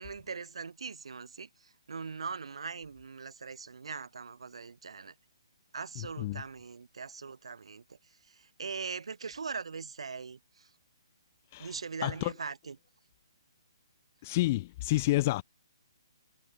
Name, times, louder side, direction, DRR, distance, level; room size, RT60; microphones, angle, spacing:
voice 1, 0.0-5.2 5.7-10.7 11.6-12.8, right 5 dB, 80° right, 2.1 m, -41 dB
voice 2, 12.0-12.3 14.2-15.4, left 18 dB, 25° left, 0.4 m, -29 dB
hypercardioid pair, 165°, 3 cm